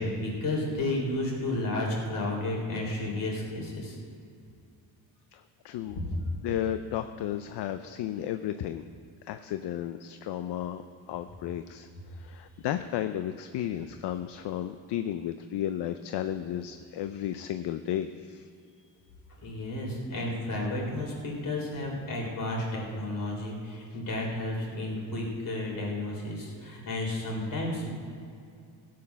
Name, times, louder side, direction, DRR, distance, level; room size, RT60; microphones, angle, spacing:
voice 1, 0.0-4.0 19.4-27.9, left 1 dB, 50° left, -2 dB, 3.8 m, -32 dB
voice 2, 5.3-6.0 6.4-8.9 9.2-10.8 11.1-18.5, left 11 dB, 75° left, 9 dB, 0.6 m, -33 dB
16.0 x 7.7 x 5.8 m, 2.5 s
cardioid pair, 125°, 41 cm